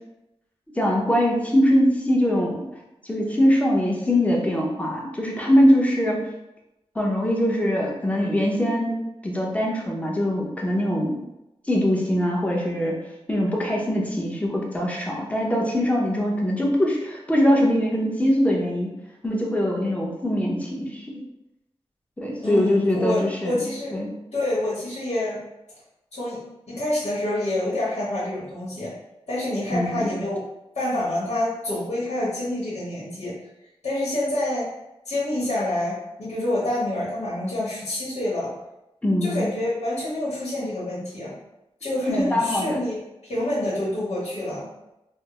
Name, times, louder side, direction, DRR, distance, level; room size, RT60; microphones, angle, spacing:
voice 1, 0.7-2.6 3.0-6.2 6.9-11.2 11.6-13.0 13.3-18.9 19.2-21.2 22.2-23.6 23.9-24.1 29.7-30.1 39.0-39.5 42.3-42.8, equal, 10° left, -2 dB, 0.7 m, -22 dB
voice 2, 22.4-23.9 24.3-25.4 26.1-28.9 29.3-30.4 30.7-33.3 33.8-34.7 35.0-38.5 39.2-41.4 41.8-44.7, left 1 dB, 85° left, -8 dB, 1.1 m, -27 dB
3.3 x 2.0 x 2.9 m, 0.92 s
wide cardioid pair, 70°, 11 cm